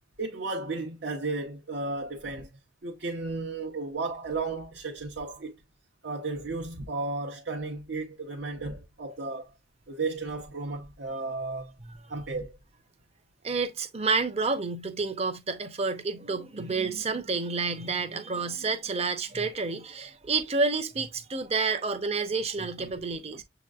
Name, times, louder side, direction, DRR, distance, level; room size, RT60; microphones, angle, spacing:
voice 1, 0.2-2.5 2.8-5.5 6.0-9.5 9.9-11.7 12.1-12.6 22.8-22.9 23.3-23.4, right 3 dB, 65° right, 0.9 m, -34 dB
voice 2, 13.4-23.4, right 4 dB, 35° right, 0.7 m, -29 dB
7.3 x 3.0 x 2.4 m
head